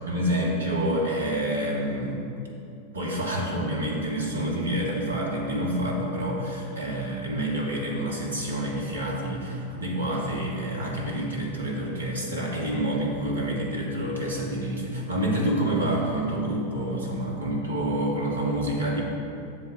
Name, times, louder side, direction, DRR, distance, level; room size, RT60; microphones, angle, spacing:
voice 1, 0.1-2.2 2.9-19.0, right 1 dB, 75° right, -3 dB, 1.5 m, -28 dB
7.4 x 4.4 x 6.5 m, 2.7 s
figure-of-eight pair, 90°, 0 cm